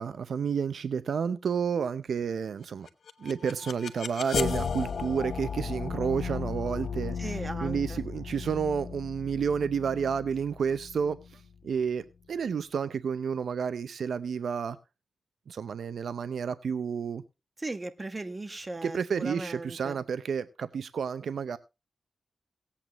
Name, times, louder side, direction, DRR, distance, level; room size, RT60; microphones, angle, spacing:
voice 1, 0.0-2.9 3.2-7.3 7.6-14.8 15.5-17.2 18.8-21.6, right 6 dB, 80° right, 0.6 m, -30 dB
sound 1, 2.9-11.8, left 6 dB, 80° left, 1.0 m, -35 dB
voice 2, 7.2-8.0 17.6-20.0, right 2 dB, 30° right, 1.4 m, -37 dB
18.5 x 8.6 x 3.0 m
cardioid pair, 70°, 0 cm